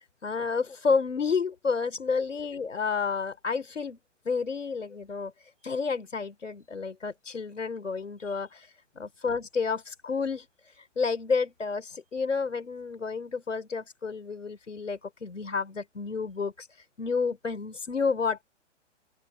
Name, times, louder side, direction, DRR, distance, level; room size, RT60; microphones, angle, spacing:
voice 1, 0.2-4.0 4.2-5.3 5.6-8.7 9.0-10.5 11.0-16.7 17.0-18.4, left 5 dB, 85° left, 4.1 m, -30 dB
open air
hypercardioid pair, 125°, 36 cm